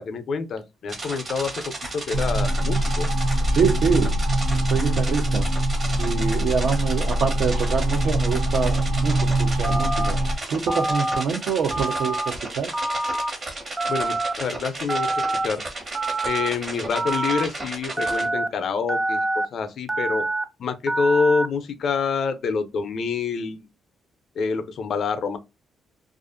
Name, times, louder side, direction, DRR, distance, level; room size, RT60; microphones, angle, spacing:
voice 1, 0.0-3.1 13.9-15.1 15.4-15.6 16.2-19.3 19.5-20.3 20.6-23.6 24.4-25.4, left 5 dB, 60° left, 0.5 m, -26 dB
sound 1, 0.9-18.3, right 2 dB, 45° right, 1.1 m, -34 dB
sound 2, 2.1-10.4, right 1 dB, 90° right, 0.9 m, -23 dB
voice 2, 3.5-4.1 4.5-5.5 6.0-10.2 10.5-12.7, right 6 dB, 65° right, 0.6 m, -25 dB
Telephone, 9.6-10.1 10.7-11.2 11.7-12.3 12.7-13.3 13.8-14.3 14.9-15.5 15.9-16.5 16.9-17.4 18.0-18.5 18.9-19.5 19.9-20.4 20.9-21.5, right 2 dB, 20° right, 0.4 m, -26 dB
2.4 x 2.4 x 2.4 m
cardioid pair, 90°, 0 cm